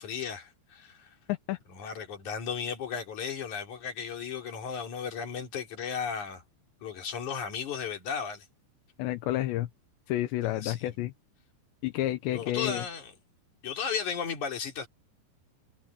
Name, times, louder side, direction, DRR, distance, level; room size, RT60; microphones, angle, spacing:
voice 1, 0.0-1.1 1.7-6.4 6.8-8.5 10.6-11.0 12.3-13.1 13.6-14.9, left 6 dB, 45° left, 4.6 m, -35 dB
voice 2, 1.3-1.9 9.0-9.7 10.1-11.1 11.8-12.8, left 15 dB, 85° left, 3.2 m, -30 dB
omnidirectional pair, 5.0 m